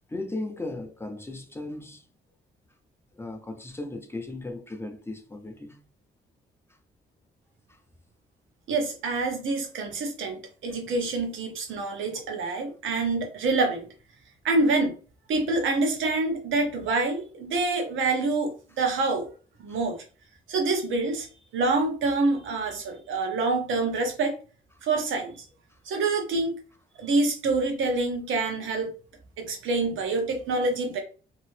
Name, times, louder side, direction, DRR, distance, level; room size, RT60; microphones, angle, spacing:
voice 1, 0.1-2.0 3.2-5.8, left 2 dB, 10° left, 0.6 m, -36 dB
voice 2, 8.7-13.9 14.4-14.9 15.3-19.3 19.6-20.0 20.5-21.3 21.5-24.4 24.8-25.4 25.9-26.6 27.0-29.0 29.4-31.0, right 3 dB, 80° right, 1.0 m, -26 dB
2.9 x 2.7 x 3.2 m
cardioid pair, 90°, 20 cm